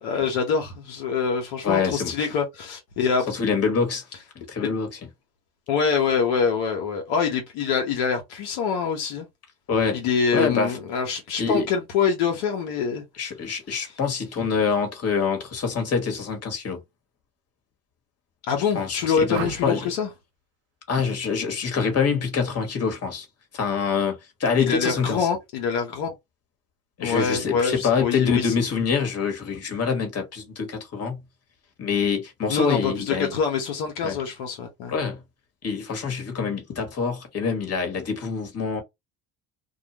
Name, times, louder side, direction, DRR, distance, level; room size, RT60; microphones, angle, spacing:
voice 1, 0.0-3.2 4.6-4.7 5.7-9.3 9.9-13.0 18.5-20.1 24.6-26.1 27.0-28.5 32.5-34.9, left 6 dB, 80° left, 0.9 m, -25 dB
voice 2, 1.6-2.3 3.3-4.1 4.3-5.0 9.7-10.0 10.3-10.8 11.4-11.7 13.2-16.8 18.7-19.9 20.9-23.3 23.5-25.3 27.0-31.2 31.8-33.3 34.0-34.2 34.9-35.2 35.6-38.8, left 5 dB, 40° left, 1.3 m, -25 dB
sound 1, 19.3-19.9 21.7-22.0 22.3-22.7, right 10 dB, 85° right, 0.6 m, -37 dB
2.4 x 2.2 x 2.9 m
supercardioid pair, 75°, 39 cm